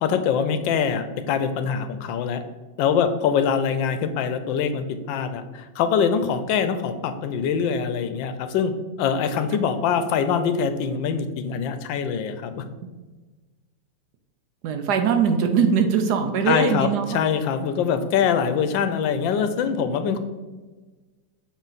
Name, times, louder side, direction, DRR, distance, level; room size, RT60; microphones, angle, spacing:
voice 1, 0.0-2.4 2.8-8.7 9.0-12.6 16.5-20.2, left 7 dB, 90° left, 9 dB, 1.3 m, -24 dB
voice 2, 14.6-17.1, right 6 dB, 70° right, 6 dB, 1.1 m, -21 dB
6.4 x 4.1 x 4.0 m, 1.3 s
omnidirectional pair, 2.0 m